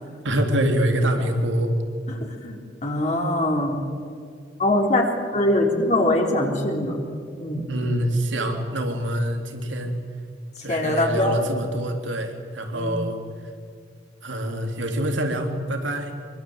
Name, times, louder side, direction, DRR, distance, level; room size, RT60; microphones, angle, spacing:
voice 1, 0.2-1.7 7.7-9.9 10.6-13.2 14.2-16.1, right 1 dB, 75° right, 4 dB, 3.7 m, -25 dB
voice 2, 2.1-3.8 4.6-7.0 7.3-7.7 10.7-11.4 12.7-12.9, left 1 dB, 40° left, 1 dB, 3.7 m, -23 dB
26.0 x 24.0 x 8.1 m, 2.2 s
head